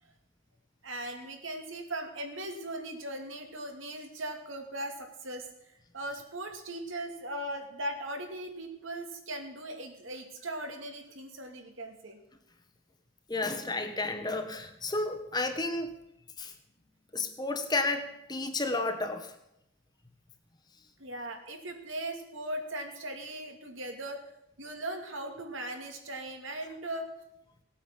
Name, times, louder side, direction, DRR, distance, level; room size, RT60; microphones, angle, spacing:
voice 1, 0.8-5.5 5.9-12.2 21.0-24.2 24.6-27.1, right 1 dB, 70° right, 4 dB, 2.4 m, -39 dB
voice 2, 13.3-15.9 16.4-16.5 17.1-19.3, left 2 dB, 20° left, 6 dB, 1.2 m, -32 dB
18.0 x 8.8 x 7.4 m, 0.83 s
head